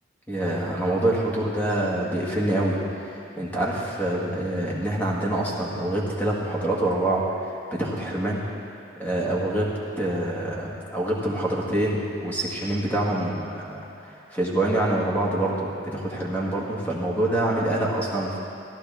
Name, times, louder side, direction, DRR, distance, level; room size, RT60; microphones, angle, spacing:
voice 1, 0.3-2.8 3.4-8.4 9.0-18.4, right 1 dB, 10° left, -5 dB, 1.7 m, -26 dB
14.5 x 11.0 x 3.5 m, 2.6 s
head